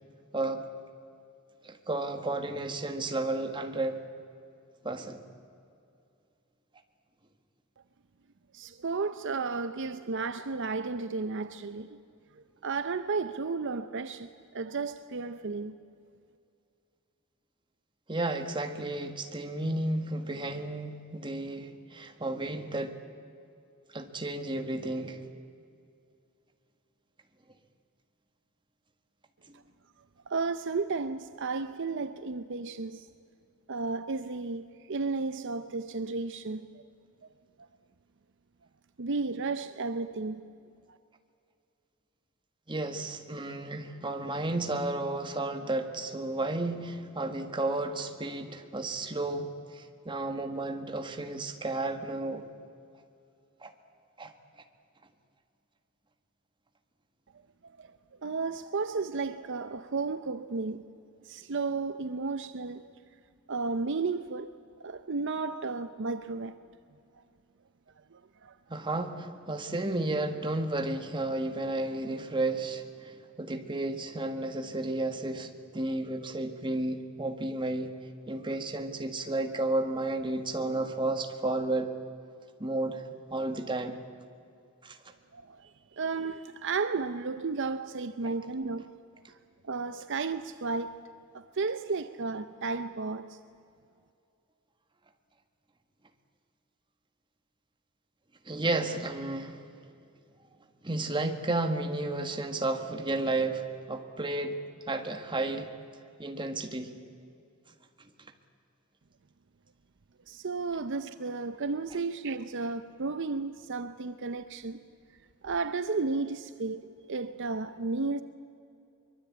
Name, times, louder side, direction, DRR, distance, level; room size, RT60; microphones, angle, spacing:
voice 1, 1.6-4.0 4.8-5.3 18.1-23.0 23.9-25.3 42.7-52.4 53.6-53.7 54.2-54.3 68.7-77.9 78.3-81.9 82.6-83.0 83.3-84.0 84.8-85.0 88.2-88.3 98.4-99.6 100.8-104.6 104.9-105.7 106.2-106.9 108.0-108.1, right 2 dB, 20° right, 1.7 m, -32 dB
voice 2, 8.5-12.0 12.6-15.7 29.5-29.6 30.3-33.1 33.7-36.7 39.0-40.4 40.9-41.0 57.8-57.9 58.2-60.9 61.2-62.9 63.5-64.5 64.8-66.6 68.1-68.6 85.3-88.9 89.3-89.4 89.6-91.0 91.3-93.4 110.3-114.8 115.4-118.2, right 4 dB, 55° right, 0.7 m, -33 dB
24.0 x 22.5 x 8.6 m
head